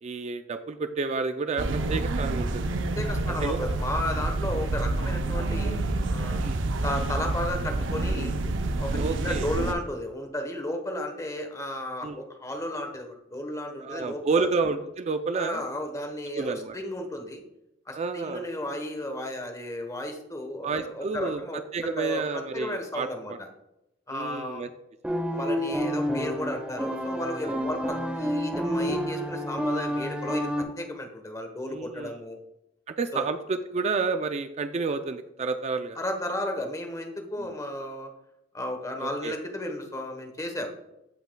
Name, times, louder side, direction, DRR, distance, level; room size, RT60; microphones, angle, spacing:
voice 1, 0.0-2.7 3.3-3.6 5.3-5.5 6.4-6.6 9.0-9.5 12.0-12.2 13.8-15.7 16.3-16.8 17.9-18.5 20.6-21.4 21.7-23.4 24.1-24.7 27.4-27.6 31.7-32.1 32.9-36.0 37.4-37.5 39.0-39.4, right 4 dB, 35° right, 9 dB, 0.4 m, -30 dB
sound 1, 1.6-9.7, right 2 dB, 90° right, 0.6 m, -28 dB
voice 2, 3.0-6.4 6.8-8.3 8.8-14.5 15.3-17.4 17.9-23.3 24.1-24.6 25.3-32.4 33.1-33.3 35.9-38.1 38.5-40.7, left 1 dB, 20° left, 4 dB, 1.1 m, -34 dB
sound 2, 25.0-30.6, equal, 5° right, 0.9 m, -29 dB
15.0 x 5.6 x 2.2 m, 0.88 s
head